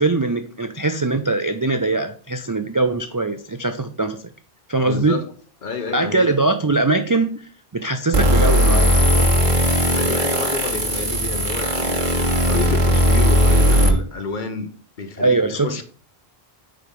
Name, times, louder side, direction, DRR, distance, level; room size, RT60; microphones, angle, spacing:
voice 1, 0.0-4.2 4.7-5.2 5.9-9.3 15.2-15.8, right 3 dB, 35° right, 7 dB, 0.3 m, -21 dB
voice 2, 4.8-5.2 5.6-6.3 9.9-14.7 15.0-15.4 15.6-15.8, left 4 dB, 55° left, 8 dB, 1.0 m, -29 dB
sound 1, 8.1-13.9, equal, 50° right, 1.5 m, -17 dB
5.0 x 4.6 x 5.2 m, 0.43 s
omnidirectional pair, 1.0 m